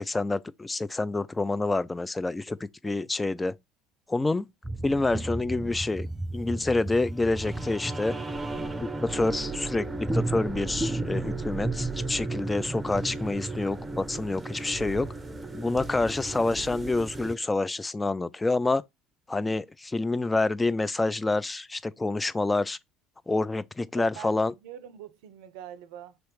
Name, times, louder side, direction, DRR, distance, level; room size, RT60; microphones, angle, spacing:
voice 1, 0.0-3.5 4.1-4.5 4.8-6.1 6.3-8.2 8.8-15.1 15.5-18.8 19.3-22.8 23.3-24.5, left 2 dB, 15° left, 0.3 m, -27 dB
sound 1, 4.6-17.4, right 2 dB, 15° right, 0.7 m, -34 dB
voice 2, 24.0-26.2, right 10 dB, 60° right, 0.5 m, -44 dB
3.0 x 3.0 x 4.6 m
figure-of-eight pair, 60°, 0 cm